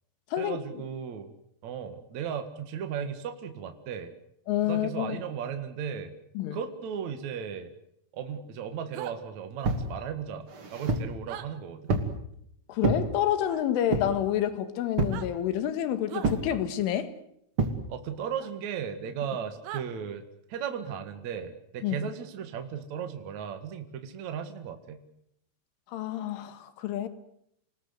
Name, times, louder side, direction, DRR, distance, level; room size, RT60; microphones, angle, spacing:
voice 1, 0.4-1.3 1.6-4.1 4.6-6.1 6.5-7.7 8.1-10.5 10.7-11.9 17.9-20.2 20.5-25.0, right 7 dB, 55° right, 2.1 m, -36 dB
voice 2, 4.5-5.2 6.4-6.6 12.7-17.1 21.8-22.0 25.9-27.1, left 11 dB, 75° left, 4.2 m, -28 dB
sound 1, 8.9-9.2 11.3-11.5 13.4-13.6 15.0-15.3 16.1-16.3 18.4-18.5 19.6-19.9, right 12 dB, 90° right, 4.2 m, -39 dB
sound 2, 9.6-9.9 10.5-11.1 11.9-12.2 12.8-13.1 13.9-14.2 15.0-15.3 16.2-16.5 17.6-17.8, right 3 dB, 40° right, 2.1 m, -27 dB
29.0 x 19.5 x 8.1 m
omnidirectional pair, 5.9 m